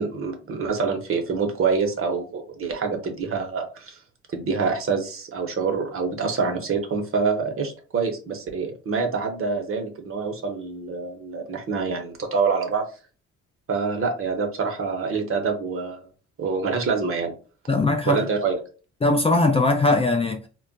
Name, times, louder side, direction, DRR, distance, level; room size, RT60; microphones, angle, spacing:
voice 1, 0.0-4.0 4.3-12.9 13.7-16.0 16.4-17.3 18.1-18.6, right 5 dB, 45° right, 0.8 m, -26 dB
voice 2, 17.7-18.2 19.0-20.5, left 2 dB, 20° left, 0.4 m, -20 dB
2.3 x 2.1 x 3.8 m
cardioid pair, 90°, 30 cm